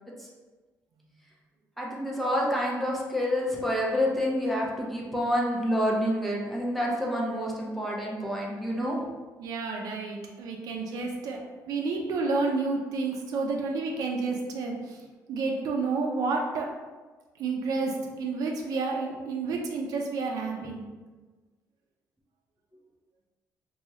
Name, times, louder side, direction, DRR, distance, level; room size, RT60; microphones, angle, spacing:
voice 1, 1.8-9.0, equal, ahead, -3 dB, 0.5 m, -28 dB
voice 2, 9.4-15.0 15.3-16.8 17.4-20.8, right 3 dB, 65° right, 1 dB, 0.5 m, -30 dB
2.9 x 2.3 x 4.1 m, 1.3 s
cardioid pair, 160°, 7 cm